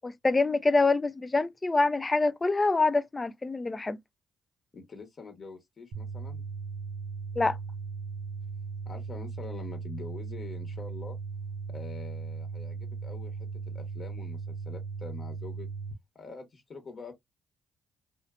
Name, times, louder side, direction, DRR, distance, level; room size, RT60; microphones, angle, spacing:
voice 1, 0.0-4.0 7.4-7.6, left 3 dB, 25° left, 0.3 m, -25 dB
voice 2, 4.7-6.4 8.9-11.2 11.7-15.7 16.1-17.1, left 4 dB, 45° left, 1.0 m, -45 dB
sound 1, 5.9-15.9, right 5 dB, 75° right, 0.6 m, -38 dB
2.4 x 2.4 x 2.2 m
hypercardioid pair, 50°, 0 cm